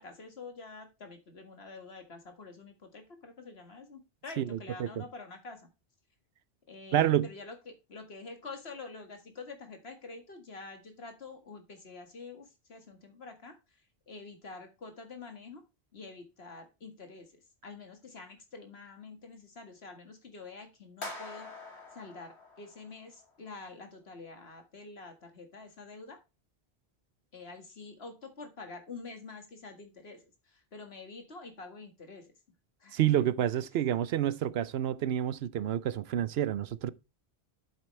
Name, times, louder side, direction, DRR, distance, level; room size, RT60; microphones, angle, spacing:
voice 1, 0.0-5.7 6.7-15.6 15.9-17.4 17.6-21.5 21.9-26.2 27.3-32.3 32.8-33.3, left 3 dB, 70° left, 2.1 m, -47 dB
voice 2, 4.4-5.0 6.9-7.3 32.9-36.9, right 11 dB, 75° right, 0.8 m, -29 dB
sound 1, 21.0-23.2, left 2 dB, 90° left, 2.5 m, -45 dB
8.2 x 7.5 x 3.2 m
omnidirectional pair, 1.1 m